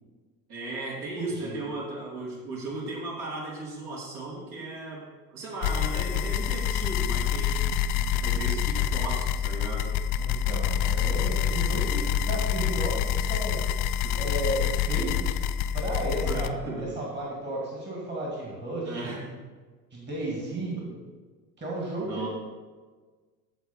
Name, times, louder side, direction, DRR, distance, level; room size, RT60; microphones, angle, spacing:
voice 1, 0.5-9.9 14.0-14.2 16.2-17.0 18.8-19.4 20.8-20.9 22.0-22.3, right 2 dB, 50° right, -4 dB, 2.8 m, -36 dB
voice 2, 1.1-1.7 10.2-13.6 14.1-15.4 15.7-19.2 19.9-20.8 21.6-22.3, right 1 dB, 20° right, -3 dB, 2.4 m, -33 dB
sound 1, 5.6-16.5, left 9 dB, 45° left, 0.5 m, -27 dB
13.5 x 4.8 x 4.4 m, 1.4 s
figure-of-eight pair, 70°, 49 cm